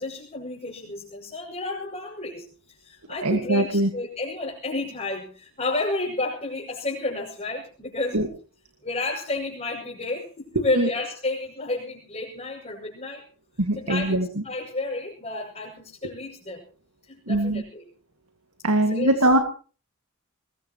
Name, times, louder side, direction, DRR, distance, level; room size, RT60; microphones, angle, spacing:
voice 1, 0.0-2.5 2.8-8.2 8.8-13.2 13.8-16.6 17.1-17.9 18.8-19.1, left 2 dB, 35° left, -6 dB, 6.0 m, -31 dB
voice 2, 3.2-3.9 8.1-8.3 10.7-10.9 13.6-14.3 17.3-17.6 18.6-19.4, right 1 dB, 85° right, 6 dB, 2.0 m, -21 dB
22.0 x 21.5 x 3.0 m, 0.39 s
head